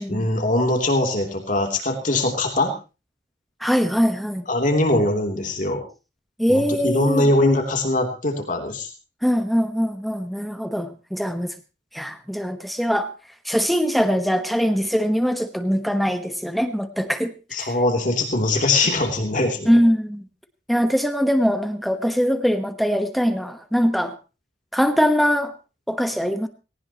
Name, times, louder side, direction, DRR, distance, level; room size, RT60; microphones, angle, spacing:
voice 1, 0.0-2.7 4.5-5.8 6.5-8.9 17.5-19.7, left 2 dB, 45° left, 3 dB, 3.1 m, -22 dB
voice 2, 3.6-4.4 6.4-7.3 9.2-11.5 11.9-13.1 13.4-17.3 17.6-17.7 19.6-20.2 20.7-24.1 24.7-25.5 25.9-26.5, equal, ahead, 8 dB, 1.2 m, -22 dB
19.5 x 18.5 x 3.0 m, 0.32 s
head